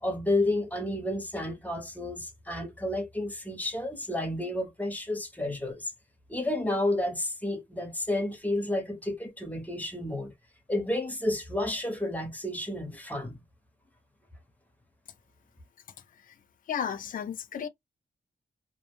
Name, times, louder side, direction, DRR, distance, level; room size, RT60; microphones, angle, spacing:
voice 1, 0.0-5.9 6.3-10.3 10.7-13.4, left 1 dB, 10° left, 0.6 m, -31 dB
voice 2, 16.7-17.7, left 8 dB, 45° left, 0.4 m, -33 dB
2.5 x 2.0 x 2.9 m
wide cardioid pair, 150°, 20 cm